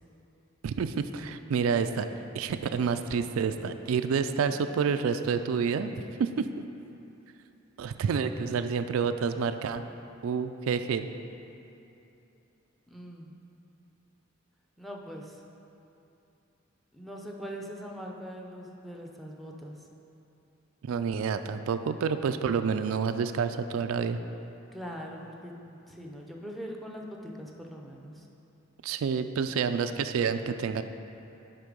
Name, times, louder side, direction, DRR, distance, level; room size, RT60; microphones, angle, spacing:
voice 1, 0.6-2.1 2.3-5.9 6.2-6.7 7.8-9.8 10.2-11.1 20.8-24.2 28.8-30.8, right 6 dB, 85° right, 9 dB, 0.3 m, -28 dB
voice 2, 12.9-13.3 14.8-15.4 16.9-19.8 24.7-28.3, equal, ahead, 0 dB, 0.6 m, -42 dB
9.9 x 3.8 x 5.1 m, 2.8 s
head